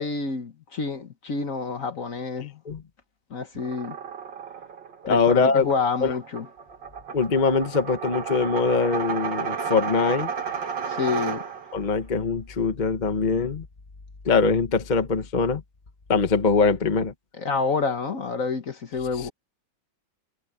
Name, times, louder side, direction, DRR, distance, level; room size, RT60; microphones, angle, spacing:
voice 1, 0.0-2.6 3.3-4.0 5.1-6.5 10.9-11.4 17.4-19.3, left 4 dB, 50° left, 1.6 m, -28 dB
sound 1, 3.5-11.9, right 6 dB, 70° right, 2.8 m, -33 dB
voice 2, 5.0-5.7 6.0-6.1 7.1-10.3 11.7-13.6 14.2-15.6 16.1-17.1, left 4 dB, 25° left, 1.2 m, -22 dB
omnidirectional pair, 2.0 m